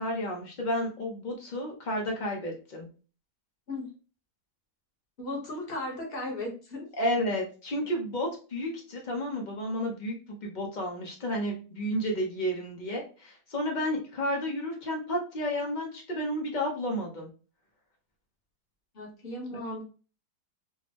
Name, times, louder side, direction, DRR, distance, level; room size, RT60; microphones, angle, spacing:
voice 1, 0.0-2.9 7.0-17.3, equal, 70° left, 0 dB, 0.4 m, -31 dB
voice 2, 5.2-6.9 18.9-19.8, left 2 dB, 40° left, -1 dB, 1.0 m, -36 dB
3.7 x 2.0 x 3.2 m, 0.36 s
omnidirectional pair, 1.8 m